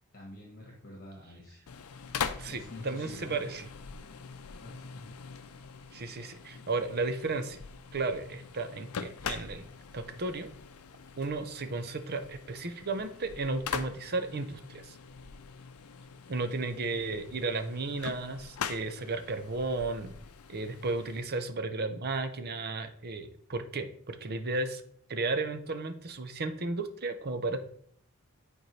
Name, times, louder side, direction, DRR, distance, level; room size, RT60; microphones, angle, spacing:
voice 1, 0.1-1.6 2.4-3.4 4.6-5.1, left 1 dB, 40° left, -2 dB, 1.6 m, -46 dB
sound 1, 1.7-21.2, left 6 dB, 80° left, 0.5 m, -43 dB
voice 2, 2.4-3.7 5.9-7.6 7.9-9.7 9.9-10.5 11.2-15.0 16.3-20.1 20.5-24.8 25.1-27.6, right 3 dB, 45° right, 8 dB, 0.7 m, -34 dB
9.2 x 4.5 x 3.3 m, 0.63 s
head